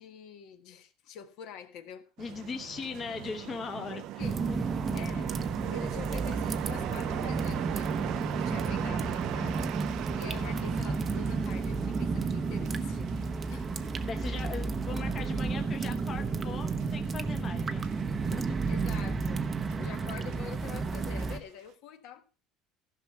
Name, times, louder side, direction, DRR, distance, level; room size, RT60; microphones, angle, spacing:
voice 1, 0.0-2.1 3.9-4.4 4.9-5.3 5.6-9.8 10.2-13.9 18.7-19.4 19.8-22.2, left 8 dB, 60° left, 1.5 m, -46 dB
voice 2, 2.2-4.6 14.0-18.6, left 5 dB, 25° left, 1.1 m, -40 dB
sound 1, 2.2-18.0 18.5-19.0 19.2-20.5 21.0-21.3, right 14 dB, 55° right, 0.5 m, -41 dB
sound 2, 4.2-21.4, right 4 dB, 20° right, 0.7 m, -32 dB
15.0 x 6.1 x 5.7 m
cardioid pair, 165°, 0 cm